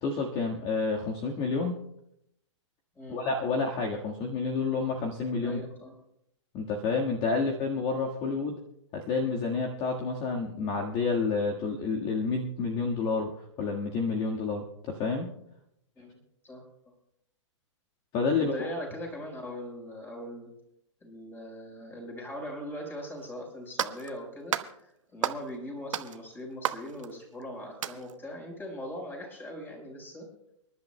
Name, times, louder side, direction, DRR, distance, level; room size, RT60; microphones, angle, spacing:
voice 1, 0.0-1.7 3.1-5.6 6.5-8.6 8.9-13.3 13.6-15.3 18.1-18.5, left 4 dB, 30° left, 1 dB, 1.6 m, -29 dB
voice 2, 5.4-5.9 8.2-8.4 16.0-16.6 18.3-20.5 21.0-30.3, left 1 dB, 10° left, 1 dB, 4.6 m, -40 dB
sound 1, 23.2-23.3 23.8-24.1 24.5-24.7 25.2-25.6 25.9-27.4 27.8-28.2, right 9 dB, 80° right, 0.9 m, -33 dB
30.0 x 11.0 x 2.2 m, 0.77 s
hypercardioid pair, 135°, 16 cm